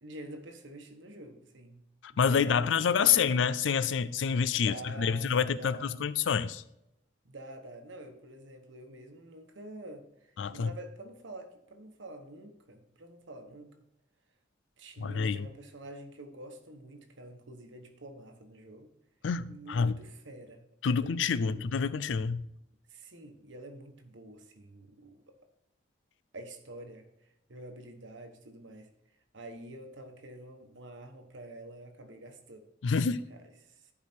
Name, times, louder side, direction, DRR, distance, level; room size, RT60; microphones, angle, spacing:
voice 1, 0.0-1.8 2.1-3.3 4.4-5.9 7.2-13.8 14.8-18.9 19.5-20.6 20.9-21.7 22.9-25.3 26.3-28.9 29.3-32.6 32.9-33.0 33.3-33.9, right 1 dB, 85° right, 1.2 m, -48 dB
voice 2, 2.0-6.6 10.4-10.7 15.0-15.5 19.2-20.0 20.8-22.5 32.8-33.2, left 6 dB, 85° left, 0.4 m, -28 dB
11.0 x 4.9 x 4.4 m
head